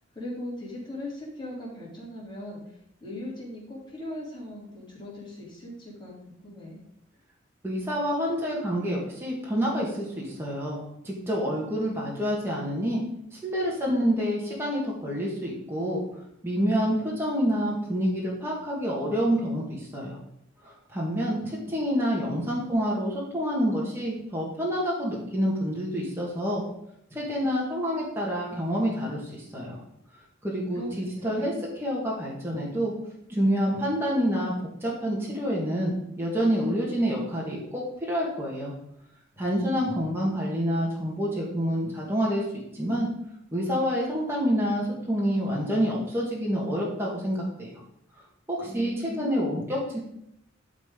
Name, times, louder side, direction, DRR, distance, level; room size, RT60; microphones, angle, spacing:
voice 1, 0.2-2.6 3.0-6.8 30.7-31.6 48.6-49.7, left 1 dB, 25° left, -5 dB, 3.5 m, -39 dB
voice 2, 7.6-10.8 11.0-13.0 13.4-16.0 16.4-20.2 20.6-26.6 27.1-29.8 30.4-31.5 31.8-32.9 33.3-34.5 34.8-38.7 39.4-42.4 42.7-43.1 43.5-47.7 48.5-50.0, equal, 10° right, -5 dB, 1.7 m, -27 dB
11.5 x 4.3 x 5.2 m, 0.78 s
head